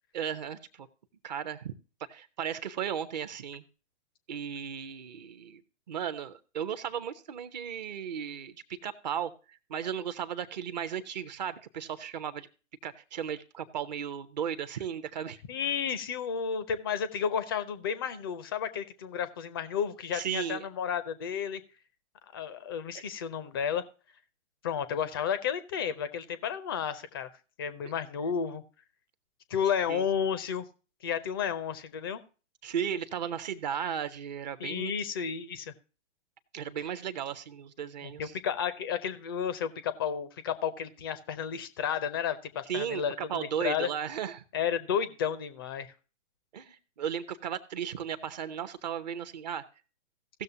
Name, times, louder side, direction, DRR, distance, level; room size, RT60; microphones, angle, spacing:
voice 1, 0.1-0.9 1.2-1.7 2.1-3.6 4.3-5.6 5.9-9.3 9.7-12.5 12.8-15.4 20.1-20.7 22.9-23.0 27.8-27.9 29.9-30.1 32.6-34.9 36.5-38.4 42.7-44.4 46.5-49.6, right 8 dB, 35° right, 11 dB, 0.6 m, -35 dB
voice 2, 15.5-21.6 22.3-23.9 24.6-27.3 27.6-28.6 29.5-30.6 31.0-32.2 34.6-35.7 38.0-43.9 44.5-45.9, left 7 dB, 20° left, 13 dB, 0.4 m, -32 dB
17.0 x 6.5 x 2.7 m, 0.35 s
figure-of-eight pair, 120°, 37 cm